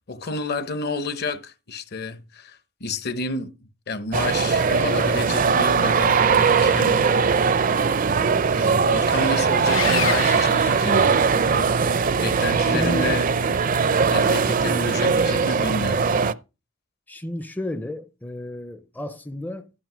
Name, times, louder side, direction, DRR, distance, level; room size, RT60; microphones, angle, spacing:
voice 1, 0.0-7.1 8.5-11.2 11.5-11.8 12.2-13.2 14.1-16.0, left 3 dB, 55° left, 0.9 m, -30 dB
sound 1, 4.1-16.3, right 5 dB, 45° right, 0.5 m, -20 dB
Sawing, 9.7-11.6, left 7 dB, 90° left, 1.8 m, -30 dB
voice 2, 12.7-13.2 17.1-19.7, left 1 dB, 10° left, 0.5 m, -31 dB
12.5 x 5.5 x 6.1 m
head